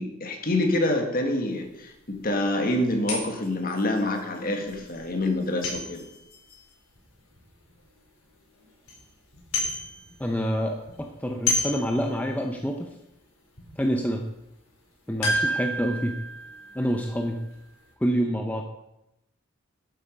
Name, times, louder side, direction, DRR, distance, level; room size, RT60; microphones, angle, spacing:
voice 1, 0.0-6.0, left 1 dB, 40° left, 4 dB, 1.8 m, -26 dB
sound 1, 1.6-1.7 2.2-2.3 3.1-7.8 8.2-8.3 8.6-9.0 9.3-10.4 10.6-12.6 13.0-13.1 13.6-13.8 15.2-17.6 17.9-18.0, left 1 dB, 90° left, 4.6 m, -32 dB
voice 2, 10.2-12.9 13.8-14.2 15.1-16.2 16.7-17.4 18.0-18.6, equal, 5° left, 3 dB, 0.6 m, -27 dB
11.5 x 9.2 x 5.3 m, 0.89 s
head